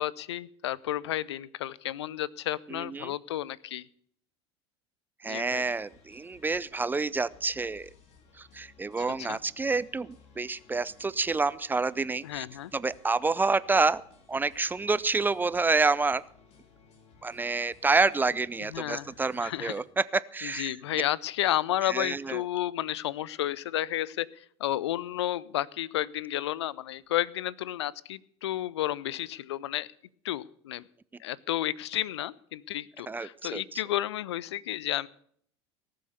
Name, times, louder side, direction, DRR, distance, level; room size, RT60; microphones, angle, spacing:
voice 1, 0.0-3.9 5.3-5.6 9.0-9.4 12.2-12.7 18.7-19.1 19.4-19.8 20.4-29.9 30.2-30.8 31.2-35.1, left 13 dB, 70° left, 23 dB, 0.5 m, -32 dB
voice 2, 2.7-3.1 5.2-7.9 8.4-12.5 12.7-14.0 14.3-16.2 17.2-20.7 21.8-22.4 33.1-33.8, right 3 dB, 15° right, 19 dB, 0.5 m, -28 dB
sound 1, 5.5-19.8, left 5 dB, 50° left, 4.0 m, -59 dB
18.5 x 7.6 x 6.8 m, 0.64 s
figure-of-eight pair, 75°, 15 cm